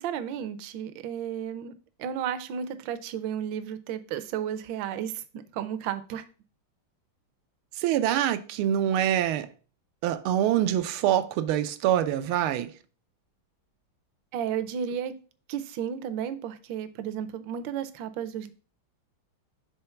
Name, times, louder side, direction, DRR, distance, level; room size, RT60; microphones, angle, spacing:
voice 1, 0.0-1.7 2.0-5.2 5.5-6.2 14.3-15.1 15.5-18.5, right 9 dB, 70° right, 1.3 m, -33 dB
voice 2, 7.8-9.5 10.0-12.7, right 11 dB, 90° right, 1.5 m, -25 dB
5.6 x 3.7 x 5.7 m
omnidirectional pair, 2.3 m